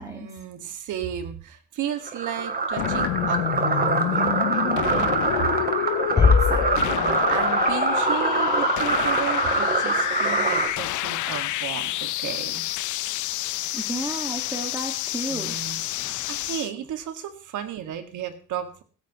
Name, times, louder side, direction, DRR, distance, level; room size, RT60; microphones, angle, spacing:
voice 1, 0.0-5.1 6.7-12.6 13.7-13.8 15.3-15.8 16.3-18.8, right 9 dB, 80° right, 8 dB, 1.9 m, -34 dB
sound 1, 2.1-10.7, right 4 dB, 30° right, 2.4 m, -24 dB
sound 2, 2.8-16.7, left 16 dB, 75° left, 0.5 m, -28 dB
sound 3, 6.2-7.6, left 5 dB, 35° left, 2.2 m, -21 dB
voice 2, 6.2-7.0 13.7-15.6 15.9-16.3, right 1 dB, 10° right, 3 dB, 1.8 m, -34 dB
16.0 x 14.0 x 3.0 m, 0.39 s
cardioid pair, 90°, 30 cm